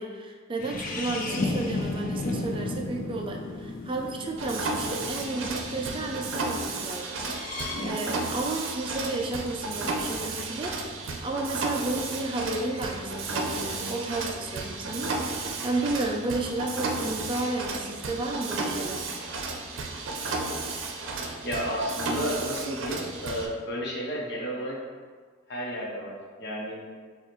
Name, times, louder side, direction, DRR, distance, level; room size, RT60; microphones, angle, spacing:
voice 1, 0.0-19.1, right 2 dB, 25° right, 1 dB, 0.4 m, -32 dB
sound 1, 0.6-6.3 7.1-7.9, left 2 dB, 45° left, 0.5 m, -34 dB
Mechanisms, 4.4-23.5, right 3 dB, 80° right, 0.5 m, -33 dB
voice 2, 21.4-24.8 25.5-26.8, equal, 60° left, -3 dB, 1.0 m, -32 dB
6.8 x 2.4 x 3.0 m, 1.6 s
head